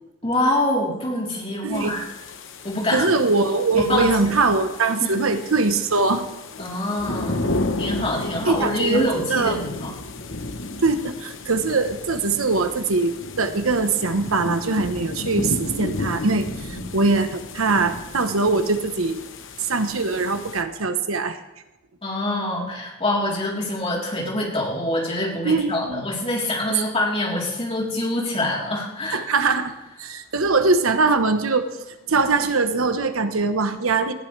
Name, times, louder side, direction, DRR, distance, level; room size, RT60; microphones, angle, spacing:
voice 1, 0.2-2.0 2.6-3.1 3.7-4.4 5.0-5.1 6.6-7.4 7.8-9.9 16.6-16.8 22.0-29.2, left 1 dB, 30° left, -3 dB, 3.7 m, -25 dB
voice 2, 1.6-1.9 2.9-6.3 8.5-9.6 10.8-19.2 19.6-21.4 25.4-26.0 29.1-29.7 30.0-31.7 32.1-34.1, right 3 dB, 90° right, 8 dB, 1.2 m, -22 dB
sound 1, 1.7-20.6, left 2 dB, 65° left, 1.1 m, -33 dB
18.5 x 15.5 x 3.4 m, 0.98 s
head